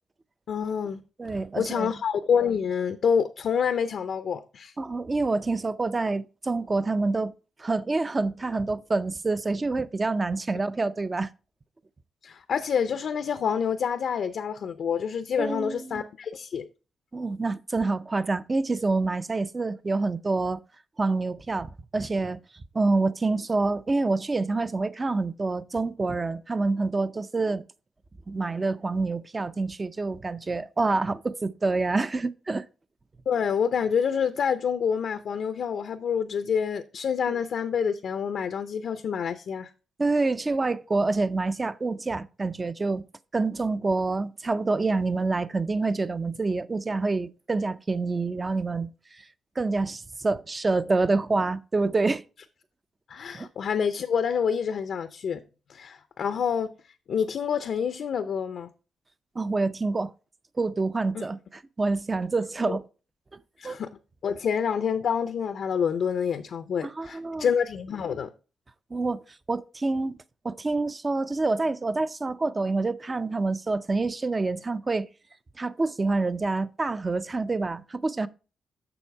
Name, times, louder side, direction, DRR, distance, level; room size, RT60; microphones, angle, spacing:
voice 1, 0.5-1.0 1.5-4.7 12.2-16.7 33.3-39.7 53.1-55.4 55.7-56.7 57.1-58.7 61.1-61.3 62.7-62.8 63.6-63.9 64.2-68.3, left 7 dB, 65° left, 0.5 m, -27 dB
voice 2, 1.2-1.9 4.8-7.3 7.6-11.3 15.4-16.0 17.1-20.6 21.0-22.4 22.7-27.6 28.3-32.6 37.3-37.4 40.0-43.0 43.3-48.9 49.2-49.3 49.6-52.2 53.3-53.5 59.4-60.1 60.6-62.8 63.6-63.8 66.8-67.5 68.9-69.2 69.5-70.1 70.4-75.1 75.6-78.3, right 3 dB, 25° right, 0.5 m, -27 dB
7.1 x 6.4 x 4.5 m
cardioid pair, 100°, 0 cm